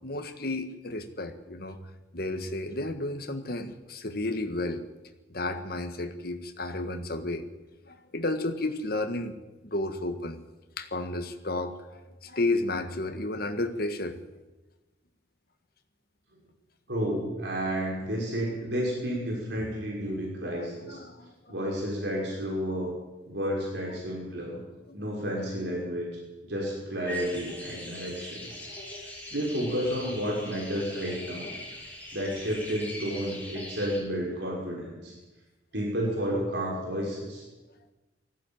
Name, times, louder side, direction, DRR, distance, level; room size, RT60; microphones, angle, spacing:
voice 1, 0.0-1.8 2.1-4.8 5.3-7.5 7.9-9.4 9.6-10.4 10.8-14.2 20.5-21.5 23.9-24.0 24.9-25.0, left 2 dB, 55° left, 7 dB, 1.7 m, -32 dB
voice 2, 16.9-21.0 21.5-23.0 23.3-24.6 24.9-26.1 26.4-28.5 29.0-31.5 32.1-35.1 35.7-37.4, equal, 65° right, -3 dB, 5.7 m, -31 dB
sound 1, 27.1-34.0, equal, 10° left, 6.1 m, -41 dB
19.5 x 15.5 x 9.2 m, 1.1 s
head